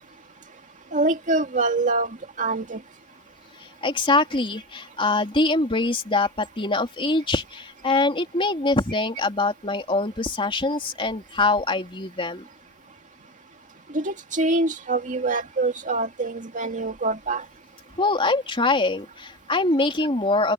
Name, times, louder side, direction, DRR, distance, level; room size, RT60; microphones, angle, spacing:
voice 1, 0.9-2.8 13.9-17.4, right 2 dB, 35° right, 2.3 m, -25 dB
voice 2, 3.6-12.4 18.0-20.5, left 2 dB, 25° left, 2.7 m, -23 dB
open air
head